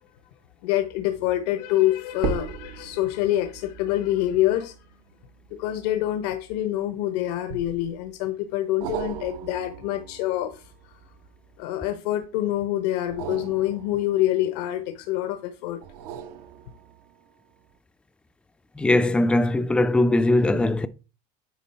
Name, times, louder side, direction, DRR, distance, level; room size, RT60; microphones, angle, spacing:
voice 1, 0.6-4.8 5.6-11.0 11.6-15.8, left 14 dB, 85° left, 0.9 m, -26 dB
sound 1, 0.9-1.3 2.1-6.8 7.5-8.1 8.8-11.8 13.0-15.1 15.8-17.2 17.7-17.8, right 7 dB, 80° right, 1.0 m, -38 dB
voice 2, 18.8-20.9, left 2 dB, 5° left, 0.3 m, -20 dB
9.0 x 4.6 x 4.2 m
cardioid pair, 150°, 20 cm